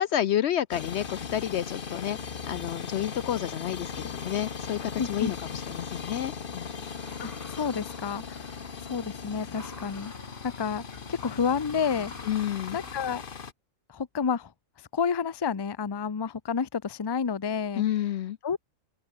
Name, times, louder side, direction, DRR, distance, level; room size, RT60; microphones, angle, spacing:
voice 1, 0.0-2.2 2.5-6.7 12.3-12.8 17.8-18.4, left 11 dB, 65° left, 0.8 m, -30 dB
sound 1, 0.7-13.5, left 6 dB, 45° left, 1.3 m, -38 dB
voice 2, 5.0-5.3 7.2-8.6 8.8-10.1 10.4-12.1 12.7-13.2 13.9-14.5 14.9-17.8 18.4-18.6, left 6 dB, 25° left, 0.5 m, -30 dB
sound 2, 6.0-13.2, left 1 dB, 10° left, 3.9 m, -51 dB
open air
omnidirectional pair, 1.4 m